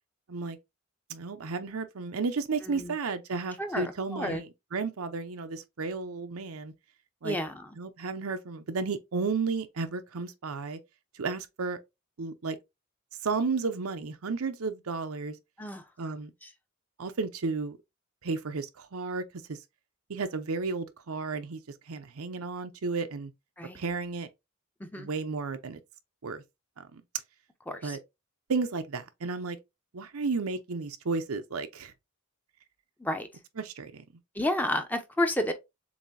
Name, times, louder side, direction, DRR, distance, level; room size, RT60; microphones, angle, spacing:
voice 1, 1.1-4.5 4.7-6.7 7.2-7.4 7.8-10.8 11.1-11.8 12.2-12.6 13.2-15.4 16.0-16.3 17.0-17.8 18.2-19.2 19.5-19.6 20.1-21.6 21.9-23.3 23.7-24.3 25.0-25.8 26.2-26.4 26.9-27.0 27.8-28.0 28.5-29.6 29.9-31.9 33.6-34.0, right 4 dB, 80° right, 0.7 m, -33 dB
voice 2, 2.6-3.0 3.6-4.4 7.2-7.8 15.6-15.8 16.4-16.5 23.6-23.8 24.8-25.1 27.7-28.0 33.0-33.3 34.3-35.5, left 1 dB, 10° left, 0.6 m, -31 dB
7.1 x 2.7 x 2.6 m
head